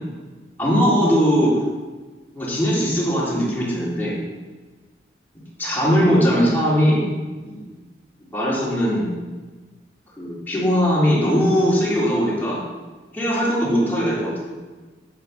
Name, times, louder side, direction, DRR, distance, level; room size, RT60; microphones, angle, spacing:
voice 1, 0.6-1.5 2.3-4.1 5.6-7.0 7.4-7.6 8.3-9.1 10.2-12.6 13.1-14.5, equal, 10° left, -8 dB, 3.2 m, -20 dB
9.5 x 9.3 x 4.1 m, 1.3 s
head